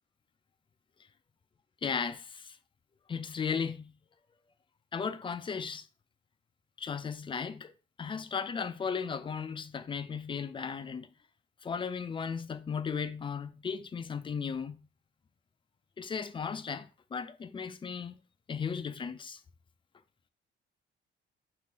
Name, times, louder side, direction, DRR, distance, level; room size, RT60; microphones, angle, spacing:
voice 1, 1.8-2.6 3.1-3.9 4.9-5.9 6.8-7.7 8.0-11.1 11.6-14.8 16.0-18.2 18.5-19.4, left 6 dB, 25° left, 0.4 m, -36 dB
3.6 x 2.5 x 4.1 m
cardioid pair, 90°, 20 cm